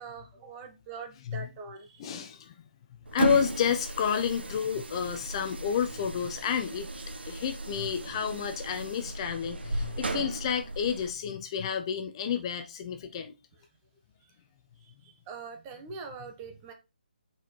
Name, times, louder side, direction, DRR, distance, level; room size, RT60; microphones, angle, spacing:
voice 1, 0.0-2.1 14.8-16.7, right 5 dB, 20° right, 1.3 m, -43 dB
voice 2, 2.0-2.5 3.1-6.9 7.2-13.3, left 7 dB, 30° left, 0.7 m, -30 dB
sound 1, 3.1-11.1, right 2 dB, 80° right, 1.2 m, -35 dB
5.7 x 4.7 x 4.2 m
figure-of-eight pair, 155°, 6 cm